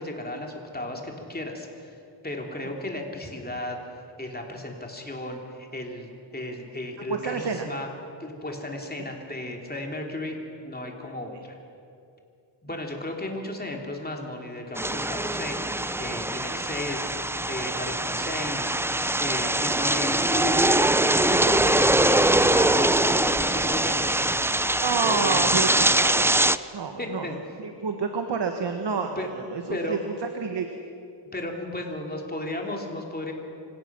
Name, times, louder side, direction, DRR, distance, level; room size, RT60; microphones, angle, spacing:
voice 1, 0.0-2.0 2.2-3.8 4.2-7.9 8.2-10.4 10.6-11.6 12.6-17.1 17.5-18.8 19.2-24.4 25.0-25.5 27.0-27.5 29.2-29.3 29.7-30.0 31.3-33.3, left 1 dB, 20° left, 1 dB, 3.0 m, -34 dB
voice 2, 7.1-7.7 24.8-26.3 26.7-27.3 27.6-30.0 30.3-30.7, right 5 dB, 65° right, 5 dB, 1.4 m, -29 dB
sound 1, 14.8-26.6, right 1 dB, 5° right, 0.4 m, -23 dB
26.0 x 16.5 x 6.1 m, 2.6 s
wide cardioid pair, 95°, 45 cm